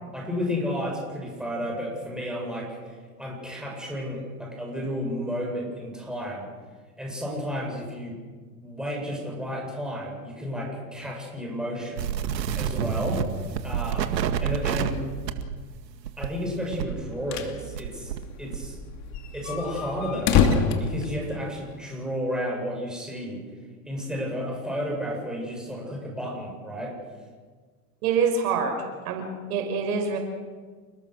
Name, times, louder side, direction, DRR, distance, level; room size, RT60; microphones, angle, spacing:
voice 1, 0.1-6.5 7.0-8.2 8.6-12.1 12.6-13.3 13.6-15.0 16.2-18.8 19.3-23.4 23.9-27.0, equal, ahead, -2 dB, 8.0 m, -32 dB
sound 1, 12.0-18.2 18.5-20.6, right 8 dB, 85° right, 2.2 m, -30 dB
sound 2, 16.9-17.6 17.9-18.0 18.2-18.3 18.8-21.8, left 7 dB, 35° left, 2.6 m, -25 dB
voice 2, 28.0-30.2, right 5 dB, 65° right, 4 dB, 5.6 m, -26 dB
30.0 x 20.0 x 6.5 m, 1.5 s
hypercardioid pair, 130°, 49 cm